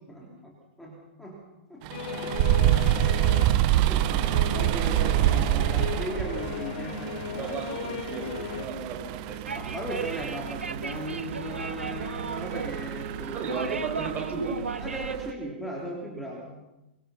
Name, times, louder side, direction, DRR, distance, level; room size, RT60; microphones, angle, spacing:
voice 1, 0.1-1.4 1.7-1.9 2.1-2.4 2.9-3.6 3.9-7.5 9.5-13.5 14.8-16.6, right 1 dB, 5° left, -2 dB, 3.6 m, -37 dB
sound 1, 1.8-15.3, right 13 dB, 40° right, 1.1 m, -28 dB
sound 2, 1.9-8.7, left 7 dB, 50° left, 2.7 m, -36 dB
voice 2, 7.4-9.4 13.3-14.6, right 4 dB, 25° right, 2 dB, 6.1 m, -34 dB
sound 3, 9.5-15.2, right 4 dB, 80° right, 1.1 m, -36 dB
24.0 x 23.5 x 5.8 m, 0.97 s
figure-of-eight pair, 110°, 6 cm